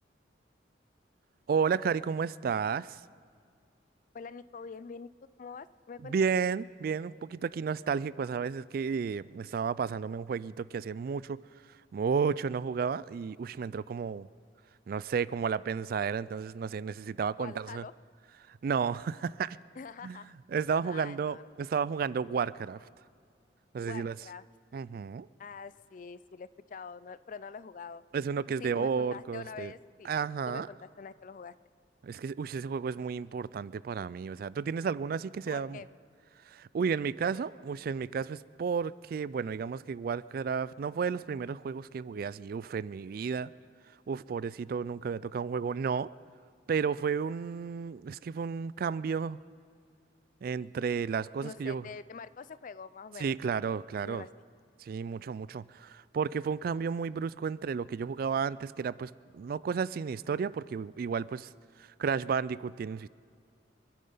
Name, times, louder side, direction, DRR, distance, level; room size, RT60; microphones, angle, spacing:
voice 1, 1.5-3.0 6.0-11.4 11.9-14.3 14.9-17.9 18.5-19.6 20.0-20.2 20.5-22.8 23.7-24.2 24.7-25.3 28.1-29.7 30.0-30.7 32.0-35.8 36.5-43.5 44.1-46.1 46.7-49.4 50.4-51.8 53.2-54.2 54.8-61.5 61.8-63.1, right 6 dB, 50° right, 19 dB, 0.3 m, -32 dB
voice 2, 4.1-5.1 5.4-6.1 17.4-17.9 19.8-20.3 20.8-21.5 23.8-24.4 25.4-28.0 28.6-30.1 30.5-31.5 35.5-35.9 51.4-53.3 54.1-54.3, left 5 dB, 45° left, 17 dB, 0.4 m, -45 dB
24.5 x 9.5 x 5.5 m, 2.2 s
head